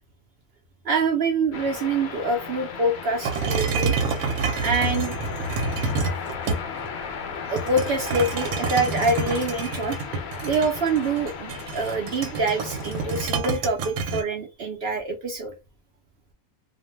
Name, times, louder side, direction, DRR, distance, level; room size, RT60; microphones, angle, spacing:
voice 1, 0.8-4.0 4.2-5.1 7.5-10.0 10.4-15.5, right 3 dB, 65° right, 3 dB, 0.6 m, -25 dB
sound 1, 1.5-13.3, left 6 dB, 65° left, 0.7 m, -36 dB
sound 2, 3.2-6.9 7.6-14.2, right 4 dB, 80° right, 1.1 m, -28 dB
2.5 x 2.1 x 3.1 m, 0.26 s
omnidirectional pair, 1.5 m